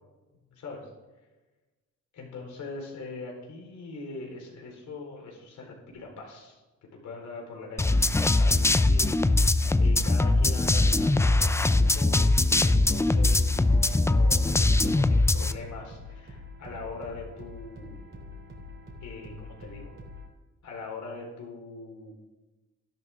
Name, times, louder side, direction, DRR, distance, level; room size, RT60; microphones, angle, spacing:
voice 1, 2.1-6.6 6.9-12.3 12.6-18.0 19.0-19.9 20.6-22.1, left 3 dB, 70° left, 0 dB, 4.3 m, -42 dB
sound 1, 7.8-15.5, left 2 dB, 10° left, 0.4 m, -22 dB
sound 2, 11.0-20.3, left 2 dB, 40° right, 3.2 m, -45 dB
12.0 x 11.5 x 3.6 m, 1.1 s
cardioid pair, 90°, 30 cm